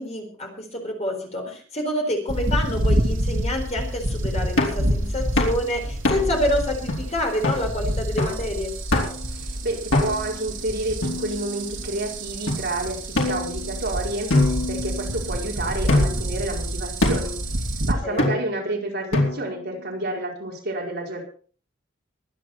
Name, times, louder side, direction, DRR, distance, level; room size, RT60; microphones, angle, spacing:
voice 1, 0.0-8.7 18.0-18.4, left 1 dB, 30° left, 2 dB, 4.3 m, -27 dB
sound 1, 2.3-17.9, right 1 dB, 65° right, 2.3 m, -28 dB
sound 2, 4.6-4.8 5.4-5.6 6.0-6.4 6.9-7.0 7.4-7.6 8.2-8.4 8.9-9.3 9.9-10.4 11.0-11.7 12.5-12.6 13.1-13.8 14.3-15.3 15.9-16.3 17.0-17.4 18.2-18.6 19.1-19.6, left 2 dB, 80° left, 4.4 m, -24 dB
voice 2, 9.3-17.4 17.8-21.2, right 2 dB, 50° right, -1 dB, 4.8 m, -30 dB
23.5 x 9.2 x 4.4 m, 0.42 s
head